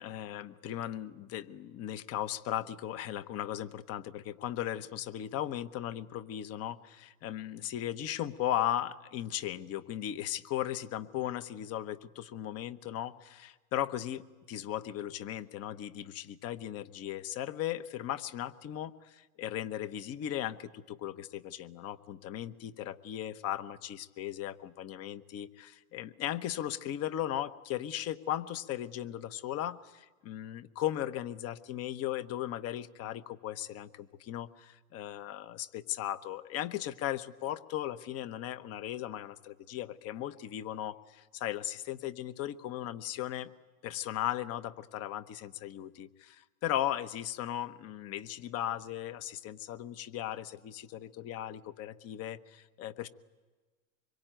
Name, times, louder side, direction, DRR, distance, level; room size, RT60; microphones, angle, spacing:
voice 1, 0.0-14.2 14.5-43.5 43.8-53.1, left 12 dB, 35° left, 13 dB, 1.1 m, -37 dB
25.0 x 23.0 x 9.0 m, 1.3 s
hypercardioid pair, 115°, 44 cm